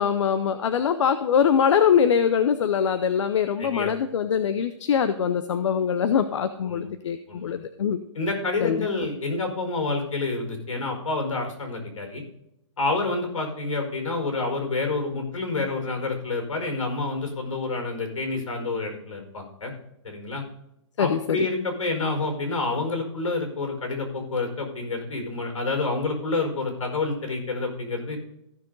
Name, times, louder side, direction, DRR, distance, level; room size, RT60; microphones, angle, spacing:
voice 1, 0.0-8.0 8.6-9.1 21.0-21.5, left 7 dB, 70° left, 10 dB, 0.8 m, -23 dB
voice 2, 3.6-3.9 6.6-6.9 7.3-7.5 8.1-12.2 12.8-19.7 20.0-20.4 21.0-28.2, left 3 dB, 85° left, 4 dB, 4.8 m, -28 dB
15.0 x 6.7 x 3.9 m, 0.81 s
hypercardioid pair, 165°, 16 cm